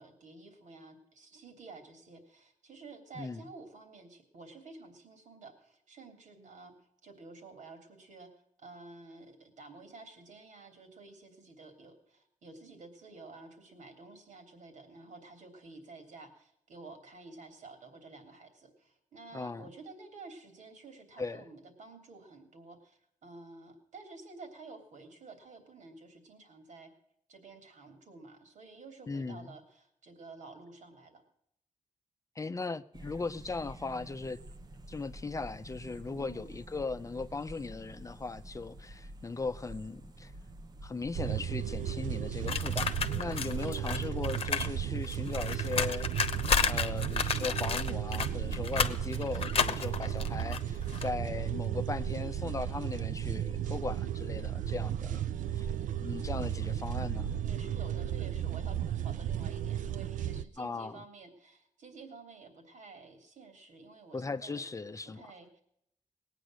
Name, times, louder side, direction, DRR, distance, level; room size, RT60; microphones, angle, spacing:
voice 1, 0.0-6.7 7.0-8.3 8.6-26.9 27.3-31.2 36.1-36.5 43.5-44.2 57.4-64.7 65.0-65.6, right 3 dB, 70° right, 3.1 m, -51 dB
voice 2, 19.3-19.7 21.2-21.4 29.1-29.6 32.4-34.4 34.9-40.3 40.8-46.1 46.6-55.2 55.5-55.7 56.0-57.3 60.6-61.0 64.1-65.2, left 3 dB, 25° left, 0.6 m, -38 dB
sound 1, 32.9-43.3, right 1 dB, 30° right, 0.8 m, -49 dB
sound 2, 41.1-60.4, right 10 dB, 85° right, 0.5 m, -34 dB
sound 3, 42.5-44.7 45.0-51.1, left 6 dB, 50° left, 1.0 m, -32 dB
19.0 x 9.1 x 6.3 m
cardioid pair, 110°, 13 cm